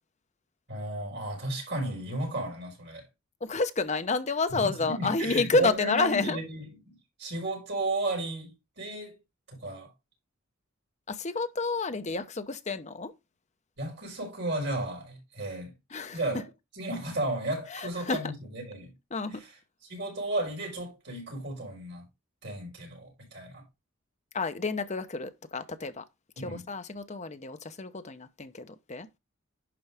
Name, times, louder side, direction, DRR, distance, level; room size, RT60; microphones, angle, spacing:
voice 1, 0.7-3.1 4.5-9.2 9.5-9.9 13.8-15.7 16.1-16.4 16.8-18.9 19.3-19.5 19.8-22.1 22.4-23.6 26.4-26.6, right 1 dB, 55° right, 5.2 m, -34 dB
voice 2, 3.4-6.4 11.1-13.1 15.9-16.4 17.7-18.2 19.1-19.4 24.3-26.0 26.4-29.1, left 3 dB, 35° left, 0.8 m, -30 dB
11.0 x 4.7 x 3.5 m
head